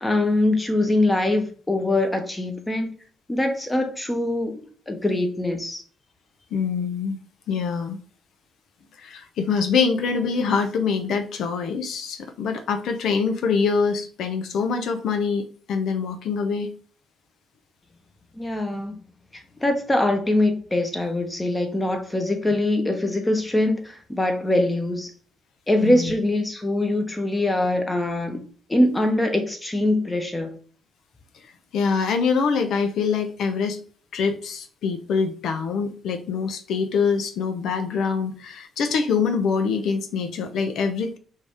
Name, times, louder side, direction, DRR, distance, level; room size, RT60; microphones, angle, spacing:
voice 1, 0.0-2.9 3.3-5.8 18.4-19.0 19.3-25.1 25.7-30.6, left 1 dB, 15° left, 1.0 m, -23 dB
voice 2, 6.5-7.2 7.5-8.0 9.0-16.8 25.8-26.1 31.4-33.8 34.1-41.2, left 5 dB, 75° left, 0.6 m, -24 dB
4.7 x 2.7 x 3.5 m
cardioid pair, 90°, 0 cm